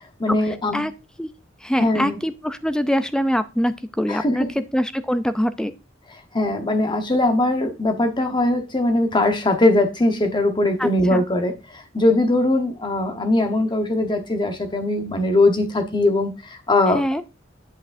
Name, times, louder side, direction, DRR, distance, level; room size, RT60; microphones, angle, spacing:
voice 1, 0.2-0.9 1.8-2.2 4.1-4.5 6.3-17.2, left 2 dB, 25° left, 1.0 m, -21 dB
voice 2, 1.6-5.7 10.8-11.2 16.9-17.2, equal, 5° left, 0.4 m, -23 dB
8.1 x 6.3 x 2.6 m
head